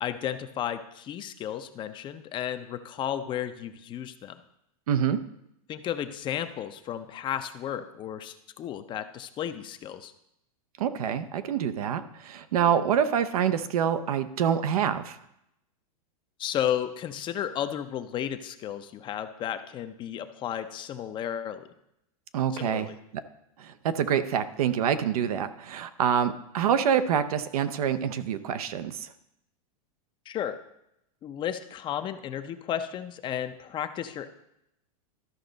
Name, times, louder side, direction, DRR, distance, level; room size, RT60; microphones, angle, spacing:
voice 1, 0.0-4.4 5.7-10.1 16.4-21.7 22.5-23.0 30.3-30.6 31.2-34.3, left 10 dB, 25° left, 10 dB, 0.5 m, -33 dB
voice 2, 4.9-5.2 10.8-15.2 22.3-22.9 23.6-29.1, right 8 dB, 80° right, 11 dB, 0.7 m, -26 dB
13.0 x 5.1 x 3.9 m, 0.80 s
supercardioid pair, 135°, 19 cm